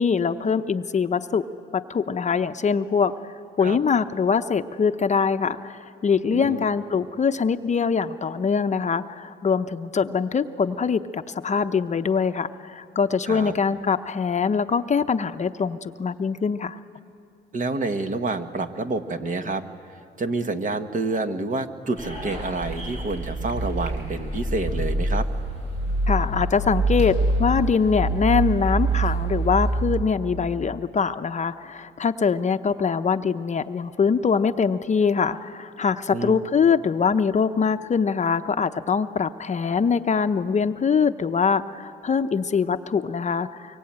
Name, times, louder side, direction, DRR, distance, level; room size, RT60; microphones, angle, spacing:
voice 1, 0.0-1.5 1.7-16.8 26.1-43.8, left 6 dB, 35° left, 9 dB, 0.8 m, -23 dB
voice 2, 6.3-6.6 13.3-13.5 17.5-19.6 20.2-25.3 36.1-36.3, right 3 dB, 40° right, 7 dB, 1.5 m, -28 dB
sound 1, 22.0-29.9, right 2 dB, 60° right, 7.3 m, -26 dB
24.0 x 23.5 x 8.8 m, 2.4 s
cardioid pair, 90°, 20 cm